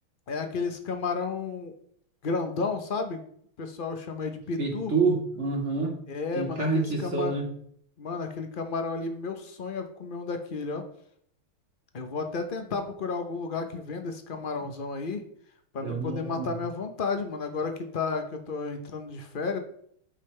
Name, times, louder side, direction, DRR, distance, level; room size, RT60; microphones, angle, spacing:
voice 1, 0.3-1.7 2.2-3.2 3.6-4.9 6.1-7.4 8.0-10.8 11.9-15.2 15.7-19.6, left 4 dB, 65° left, 6 dB, 0.5 m, -32 dB
voice 2, 4.6-6.0 6.3-7.5 15.8-16.5, right 3 dB, 35° right, 2 dB, 1.8 m, -28 dB
12.5 x 5.4 x 3.3 m, 0.65 s
omnidirectional pair, 2.3 m